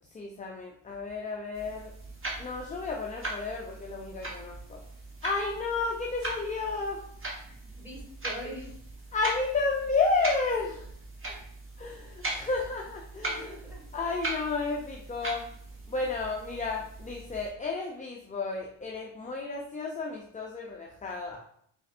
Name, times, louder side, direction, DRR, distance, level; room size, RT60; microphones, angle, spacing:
voice 1, 0.1-1.9 2.4-4.8 5.2-7.0 9.1-10.8 11.8-13.6 13.9-15.5 15.9-21.4, left 3 dB, 15° left, 0 dB, 0.5 m, -32 dB
sound 1, 1.5-17.5, right 2 dB, 25° right, 1.1 m, -40 dB
voice 2, 7.4-8.8 11.2-11.4 13.2-13.9, equal, 5° right, -3 dB, 1.6 m, -44 dB
4.1 x 4.0 x 2.5 m, 0.65 s
cardioid pair, 100°, 50 cm